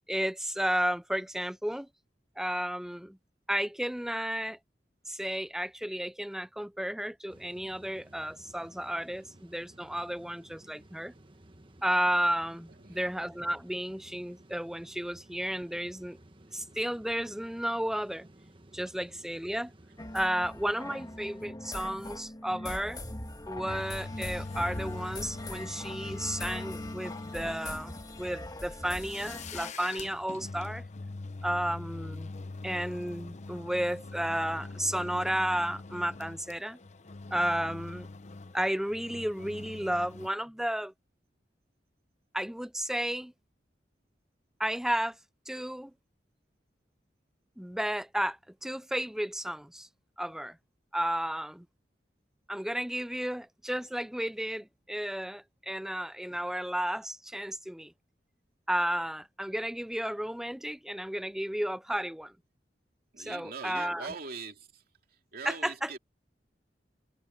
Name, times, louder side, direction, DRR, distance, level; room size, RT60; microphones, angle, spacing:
voice 1, 0.1-1.9 2.4-3.2 3.5-4.6 5.1-11.1 11.8-16.2 16.5-18.3 18.7-19.7 20.1-23.0 23.5-30.8 31.4-32.3 32.6-36.8 37.3-38.1 38.5-40.9 42.3-43.3 44.6-45.2 45.5-45.9 47.6-49.9 50.2-50.6 50.9-51.7 52.5-57.9 58.7-62.3 63.2-64.1 65.4-65.9, equal, 5° right, 0.5 m, -33 dB
sound 1, 7.3-21.4, right 1 dB, 30° right, 1.5 m, -56 dB
voice 2, 12.7-13.0 63.1-64.8 65.3-66.0, right 4 dB, 60° right, 2.6 m, -42 dB
sound 2, 20.0-29.7, left 1 dB, 20° left, 2.3 m, -41 dB
sound 3, 23.7-40.3, left 3 dB, 45° left, 0.7 m, -43 dB
head